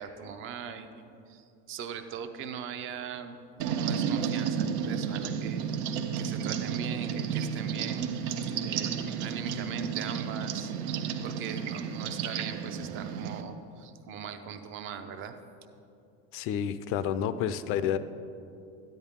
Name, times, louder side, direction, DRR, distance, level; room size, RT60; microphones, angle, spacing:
voice 1, 0.0-3.4 3.7-5.6 6.2-8.3 8.6-10.7 11.2-15.3, right 7 dB, 35° right, 8 dB, 0.7 m, -40 dB
sound 1, 3.6-13.4, right 7 dB, 80° right, 0.8 m, -32 dB
voice 2, 16.3-18.0, left 9 dB, 40° left, 13 dB, 0.4 m, -29 dB
13.0 x 10.5 x 3.6 m, 2.6 s
cardioid pair, 160°, 33 cm